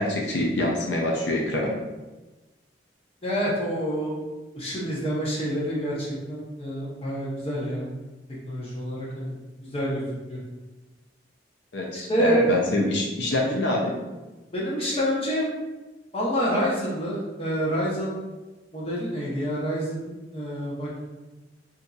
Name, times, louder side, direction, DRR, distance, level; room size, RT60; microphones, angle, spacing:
voice 1, 0.0-1.8 11.7-14.0, left 1 dB, 80° left, -1 dB, 0.5 m, -25 dB
voice 2, 3.2-4.2 4.5-7.9 8.5-9.3 9.7-10.0 10.3-10.4 11.9-12.4 14.5-15.5 16.1-18.1 18.7-21.0, equal, 30° left, -5 dB, 0.8 m, -27 dB
3.9 x 2.7 x 2.3 m, 1.1 s
head